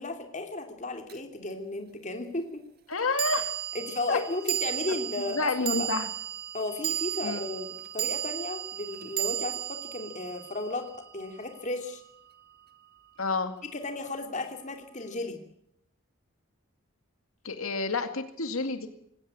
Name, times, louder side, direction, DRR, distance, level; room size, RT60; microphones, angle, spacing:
voice 1, 0.0-2.6 3.7-5.9 6.5-12.0 13.7-15.4, left 2 dB, 35° left, 5 dB, 2.9 m, -34 dB
sound 1, 1.1-1.2 3.2-11.6, right 12 dB, 45° right, 1.7 m, -34 dB
voice 2, 2.9-3.5 4.1-4.2 5.3-6.1 7.2-7.4 13.2-13.5 17.4-18.9, left 3 dB, 80° left, 8 dB, 2.2 m, -29 dB
20.0 x 17.0 x 8.7 m, 0.75 s
head